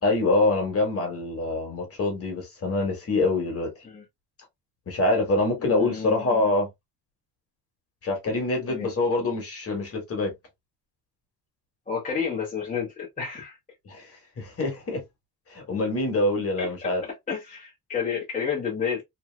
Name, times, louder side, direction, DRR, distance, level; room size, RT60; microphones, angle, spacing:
voice 1, 0.0-3.7 4.9-6.7 8.0-10.3 13.8-14.1 14.4-15.0 15.5-17.0, left 2 dB, 35° left, 1.3 m, -25 dB
voice 2, 5.6-6.5 8.7-8.9 11.9-13.6 16.6-19.0, left 6 dB, 20° left, 0.8 m, -31 dB
3.0 x 2.6 x 2.2 m
cardioid pair, 165°, 40 cm